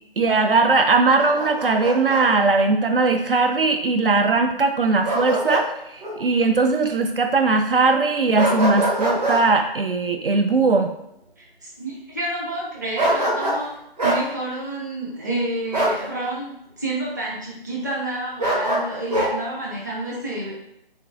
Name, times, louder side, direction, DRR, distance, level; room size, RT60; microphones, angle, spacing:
voice 1, 0.2-5.7 5.9-10.9, right 3 dB, 65° right, 5 dB, 0.4 m, -19 dB
Bark, 1.2-2.2 5.0-5.7 6.0-6.2 8.3-9.4 13.0-13.6 14.0-14.2 15.7-16.0 18.4-19.3, right 1 dB, 40° right, 1.3 m, -23 dB
voice 2, 11.4-13.7 14.0-20.5, right 1 dB, 20° right, -5 dB, 0.6 m, -29 dB
3.6 x 3.1 x 2.6 m, 0.80 s
figure-of-eight pair, 150°, 30 cm